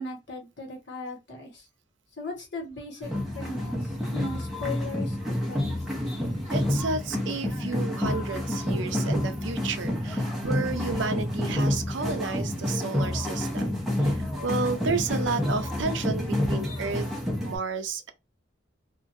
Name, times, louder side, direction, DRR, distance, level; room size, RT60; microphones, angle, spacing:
voice 1, 0.0-1.6 2.2-3.1 3.3-3.8 4.1-5.8, left 3 dB, 60° left, 1.2 m, -37 dB
sound 1, 3.0-17.6, left 1 dB, ahead, 0.7 m, -29 dB
voice 2, 6.5-17.1 17.4-18.1, right 4 dB, 70° right, 0.6 m, -31 dB
2.9 x 2.5 x 2.6 m
head